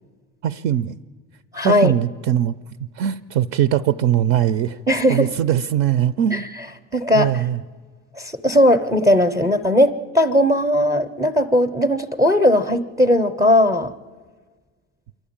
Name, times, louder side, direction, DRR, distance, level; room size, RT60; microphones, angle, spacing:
voice 1, 0.4-1.0 1.6-2.5 3.0-4.8 5.1-6.5 7.1-7.6, right 10 dB, 65° right, 14 dB, 0.5 m, -20 dB
voice 2, 1.5-1.9 4.9-5.3 6.3-6.4 6.9-7.3 8.2-13.9, left 1 dB, 10° right, 7 dB, 0.6 m, -18 dB
27.0 x 11.5 x 8.7 m, 1.5 s
cardioid pair, 150°, 29 cm